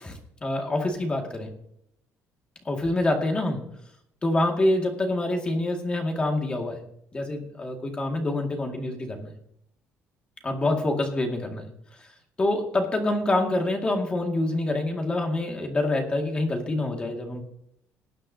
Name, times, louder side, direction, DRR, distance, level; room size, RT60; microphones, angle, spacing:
voice 1, 0.0-1.5 2.6-3.6 4.2-6.8 7.1-9.3 10.4-11.7 12.0-12.1 12.4-17.4, left 2 dB, 20° left, 2 dB, 2.2 m, -26 dB
19.5 x 9.3 x 2.8 m, 0.71 s
cardioid pair, 165°, 5 cm